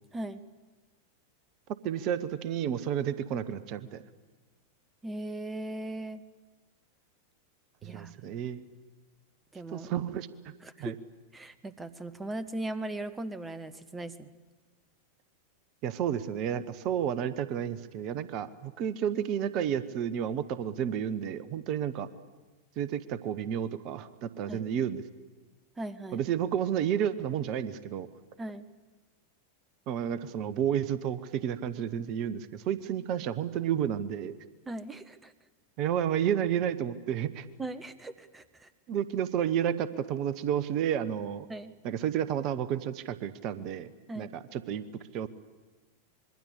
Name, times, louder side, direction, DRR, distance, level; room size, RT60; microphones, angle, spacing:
voice 1, 1.8-4.0 7.8-8.6 9.7-10.3 10.8-10.9 15.8-22.1 22.8-25.0 26.1-28.1 29.9-34.4 35.8-37.4 38.9-41.5 41.8-43.9 44.2-44.8 45.1-45.3, right 9 dB, 40° right, 16 dB, 1.1 m, -31 dB
voice 2, 5.0-6.2 7.8-8.4 9.5-9.9 10.6-11.0 11.3-14.3 24.5-24.6 25.8-26.2 28.4-28.6 34.7-35.3 37.6-38.7 41.5-41.7 44.1-44.3, right 1 dB, 15° right, 14 dB, 1.1 m, -39 dB
26.0 x 22.5 x 8.4 m, 1.3 s
figure-of-eight pair, 90°, 0 cm